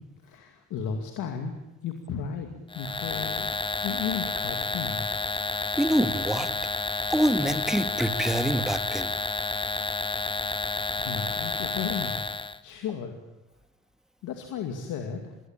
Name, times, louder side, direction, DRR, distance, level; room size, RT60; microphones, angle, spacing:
voice 1, 0.2-1.5 1.8-3.5 3.8-5.1 10.9-12.2 12.6-13.1 14.2-15.3, left 6 dB, 90° left, 5 dB, 2.5 m, -34 dB
sound 1, 2.7-12.6, left 3 dB, 15° left, 1.0 m, -30 dB
voice 2, 5.8-6.5 7.1-9.1, equal, ahead, 9 dB, 1.9 m, -25 dB
26.0 x 21.5 x 9.1 m, 1.0 s
cardioid pair, 90°, 30 cm